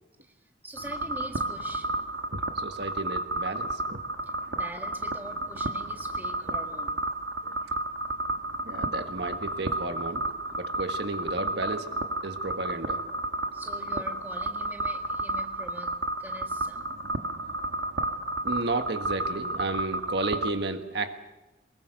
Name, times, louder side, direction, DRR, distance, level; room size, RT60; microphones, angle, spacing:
voice 1, 0.6-1.9 4.5-7.0 13.5-16.9, right 1 dB, 10° right, 3 dB, 1.8 m, -44 dB
sound 1, 0.8-20.5, right 2 dB, 85° right, 1.4 m, -32 dB
voice 2, 2.3-4.0 6.5-6.6 7.4-7.5 8.6-10.3 10.6-13.1 18.4-21.2, right 2 dB, 60° right, 6 dB, 1.5 m, -33 dB
23.0 x 21.0 x 6.6 m, 1.0 s
head